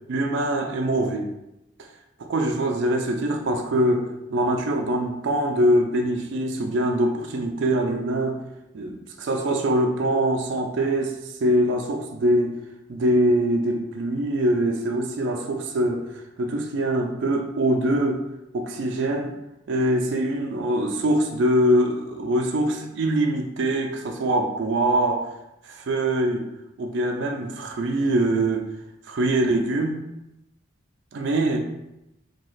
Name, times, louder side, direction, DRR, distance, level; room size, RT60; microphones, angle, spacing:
voice 1, 0.1-1.3 2.2-8.4 8.7-12.6 12.9-18.2 18.5-19.3 19.7-25.3 25.6-26.4 26.8-28.6 29.1-30.0 31.1-31.6, right 1 dB, 60° right, 2 dB, 0.4 m, -23 dB
2.9 x 2.3 x 3.1 m, 0.87 s
head